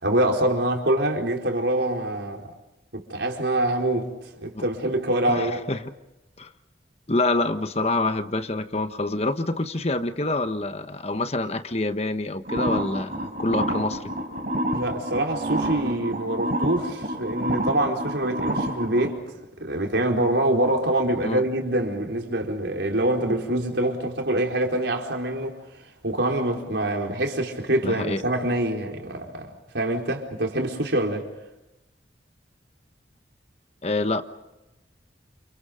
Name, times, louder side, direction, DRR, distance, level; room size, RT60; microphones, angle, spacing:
voice 1, 0.0-2.5 2.9-4.1 4.4-5.6 14.7-19.2 19.6-25.6 26.0-29.5 29.7-31.3, right 1 dB, 75° right, 4.5 m, -25 dB
voice 2, 5.3-5.9 6.4-6.5 7.1-14.0 21.2-21.4 27.8-28.2 33.8-34.2, left 2 dB, 35° left, 1.3 m, -26 dB
sound 1, 12.5-19.1, right 1 dB, 50° right, 5.0 m, -28 dB
29.5 x 29.0 x 5.2 m
head